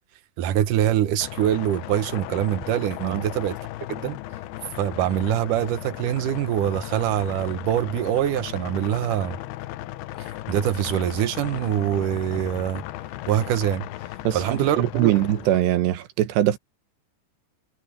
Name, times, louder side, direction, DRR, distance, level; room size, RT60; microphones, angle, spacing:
voice 1, 0.4-3.6 3.9-4.2 4.8-9.4 10.5-12.8 13.3-13.9 14.3-15.1, right 11 dB, 70° right, 2.1 m, -24 dB
sound 1, 1.2-15.6, left 15 dB, 80° left, 2.7 m, -36 dB
voice 2, 14.2-16.6, right 13 dB, 85° right, 3.4 m, -22 dB
omnidirectional pair, 4.8 m